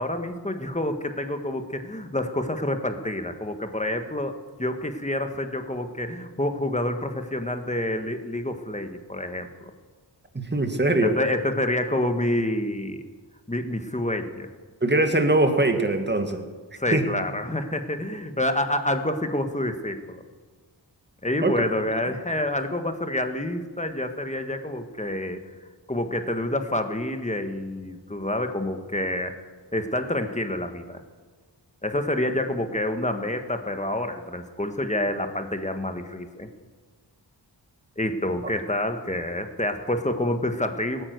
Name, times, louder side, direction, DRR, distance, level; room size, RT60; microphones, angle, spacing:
voice 1, 0.0-9.5 11.0-13.1 13.5-14.5 16.8-20.2 21.2-25.4 25.9-29.4 29.7-31.0 31.8-36.5 38.0-41.0, left 1 dB, 15° left, 7 dB, 1.5 m, -28 dB
voice 2, 10.3-11.2 14.8-16.4 16.9-17.0 21.4-21.5, right 2 dB, 25° right, 6 dB, 2.0 m, -22 dB
18.0 x 10.0 x 8.0 m, 1.4 s
wide cardioid pair, 65°, 44 cm